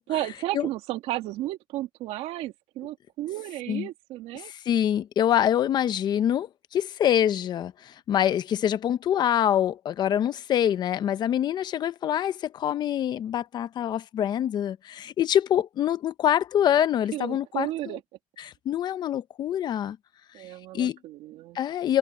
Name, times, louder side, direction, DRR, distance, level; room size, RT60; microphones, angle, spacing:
voice 1, 0.1-4.5 17.1-18.0 20.3-21.6, right 15 dB, 60° right, 2.0 m, -33 dB
voice 2, 4.3-18.0 18.4-20.0 20.4-20.5 20.7-21.0 21.5-22.0, left 10 dB, 40° left, 0.8 m, -25 dB
cardioid pair, 145°, 12 cm